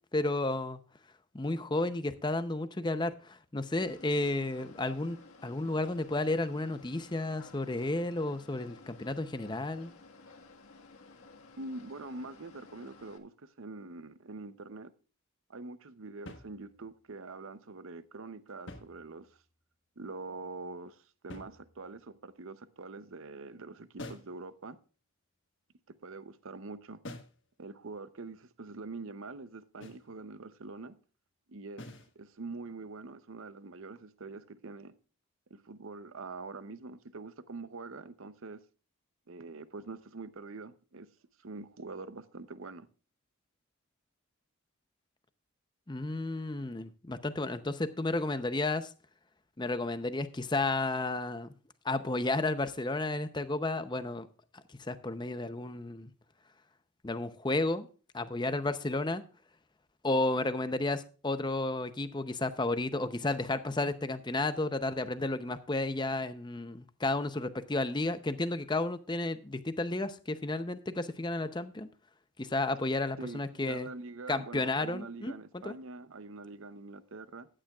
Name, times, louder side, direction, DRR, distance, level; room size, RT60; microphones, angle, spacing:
voice 1, 0.1-0.8 1.3-9.9 45.9-48.9 49.6-51.5 51.8-54.3 54.5-56.1 57.0-57.9 58.1-59.2 60.0-71.9 72.4-73.9 74.3-75.3 75.6-75.8, left 2 dB, 20° left, 0.6 m, -32 dB
sound 1, 3.8-13.2, left 3 dB, 75° left, 1.6 m, -55 dB
voice 2, 11.6-14.9 15.5-19.3 20.0-24.8 25.9-27.0 27.6-30.9 31.5-31.8 32.2-34.9 35.5-38.6 39.3-41.1 41.4-42.9 73.2-77.5, right 3 dB, 65° right, 0.7 m, -44 dB
sound 2, 16.3-17.0 18.5-19.5 21.3-22.1 24.0-24.4 27.0-27.4 29.8-30.1 31.8-32.2, left 1 dB, 55° left, 1.3 m, -47 dB
15.0 x 10.0 x 2.3 m
head